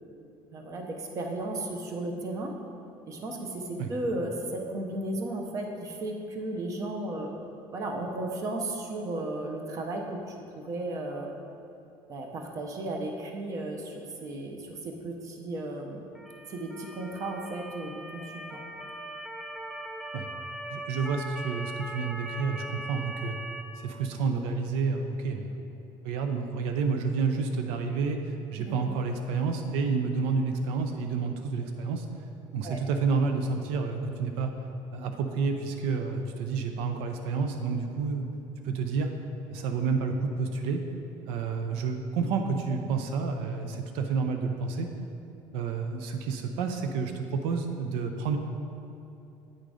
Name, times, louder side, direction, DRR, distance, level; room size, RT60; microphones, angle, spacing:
voice 1, 0.5-2.5 3.1-7.3 7.7-10.4 10.6-11.3 12.1-13.9 14.2-16.0 16.5-18.2 18.5-18.7 32.6-32.8, right 2 dB, 35° right, 2 dB, 0.8 m, -34 dB
Motor vehicle (road) / Siren, 16.2-23.6, right 1 dB, ahead, 0.4 m, -40 dB
voice 2, 20.7-23.4 23.8-25.6 26.0-32.1 32.5-34.5 34.9-38.3 38.6-39.1 39.5-40.8 41.3-44.9 45.5-48.4, right 5 dB, 85° right, 5 dB, 0.5 m, -29 dB
8.7 x 3.8 x 4.9 m, 2.9 s
cardioid pair, 155°, 10 cm